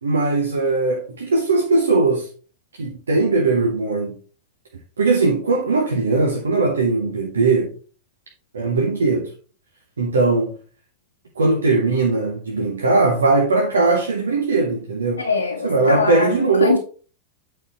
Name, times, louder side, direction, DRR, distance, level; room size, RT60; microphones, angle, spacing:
voice 1, 0.0-2.3 2.8-4.2 5.0-7.7 8.5-9.3 10.0-10.5 11.4-15.2 15.6-16.8, right 3 dB, 70° right, 1.1 m, -19 dB
voice 2, 15.2-16.3 16.6-16.8, left 4 dB, 80° left, 1.0 m, -22 dB
8.7 x 4.6 x 3.9 m
figure-of-eight pair, 90°, 0 cm